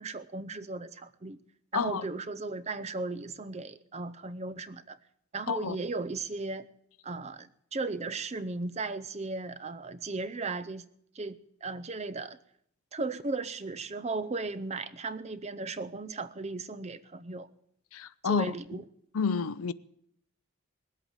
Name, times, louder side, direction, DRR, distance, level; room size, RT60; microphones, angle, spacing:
voice 1, 0.0-1.4 1.7-5.0 5.3-6.7 7.0-10.8 11.1-12.4 12.9-17.5 18.2-18.8, right 3 dB, 30° right, 0.6 m, -36 dB
voice 2, 1.7-2.0 5.5-5.8 17.9-18.5 19.1-19.7, left 5 dB, 80° left, 0.6 m, -29 dB
19.5 x 8.3 x 8.8 m
head